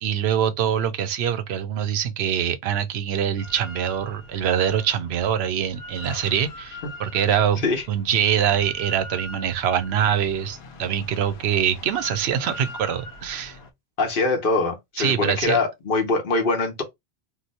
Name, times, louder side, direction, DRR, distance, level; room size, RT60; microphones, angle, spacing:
voice 1, 0.0-13.6 15.0-15.6, right 9 dB, 80° right, 0.8 m, -24 dB
Drill, 3.4-13.7, left 2 dB, 85° left, 0.9 m, -42 dB
voice 2, 14.0-16.8, left 3 dB, 60° left, 1.1 m, -23 dB
2.9 x 2.0 x 4.0 m
omnidirectional pair, 1.1 m